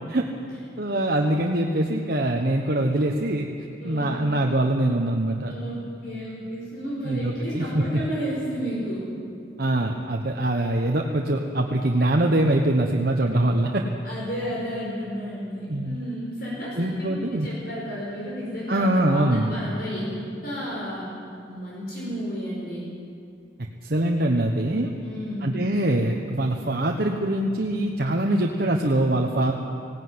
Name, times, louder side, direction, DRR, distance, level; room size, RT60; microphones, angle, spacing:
voice 1, 0.8-3.5 3.8-5.5 7.0-8.0 9.6-13.8 15.7-16.0 16.8-17.5 18.7-19.6 23.8-24.9 25.4-29.5, right 1 dB, 55° right, 1 dB, 1.1 m, -23 dB
voice 2, 3.8-4.3 5.5-9.0 14.0-21.1 21.5-22.9 25.0-25.5, equal, 55° left, -6 dB, 5.2 m, -32 dB
19.0 x 17.0 x 9.6 m, 2.4 s
head